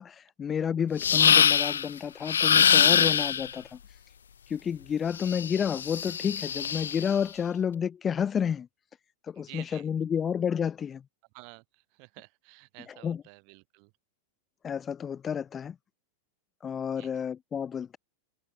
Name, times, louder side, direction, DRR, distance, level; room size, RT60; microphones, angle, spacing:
voice 1, 0.0-3.8 4.5-8.7 9.3-11.0 12.9-13.2 14.6-15.8 16.6-18.0, left 7 dB, 20° left, 0.6 m, -30 dB
sound 1, 1.0-1.9 2.3-3.5 5.2-7.1, left 8 dB, 65° left, 0.5 m, -23 dB
voice 2, 9.3-9.9 11.3-11.6 11.9-13.9 16.9-17.1, right 40 dB or more, 45° right, 3.3 m, -50 dB
figure-of-eight pair, 90°, 0 cm